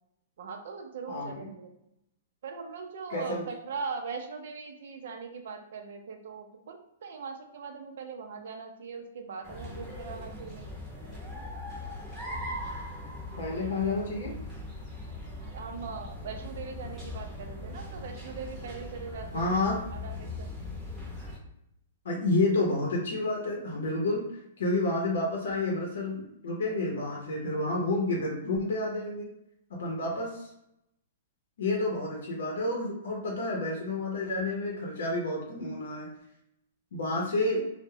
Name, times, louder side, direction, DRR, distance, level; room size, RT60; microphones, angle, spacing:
voice 1, 0.4-1.7 2.4-10.7 15.4-19.4 19.9-20.5, right 5 dB, 65° right, 5 dB, 0.4 m, -40 dB
voice 2, 1.1-1.5 3.1-3.4 13.4-14.4 19.3-19.8 22.0-29.3 29.7-30.5 31.6-36.1 36.9-37.6, left 2 dB, 75° left, -1 dB, 0.6 m, -30 dB
sound 1, 9.4-21.4, left 1 dB, 10° right, 0.7 m, -40 dB
2.2 x 2.0 x 3.1 m, 0.81 s
hypercardioid pair, 160°, 0 cm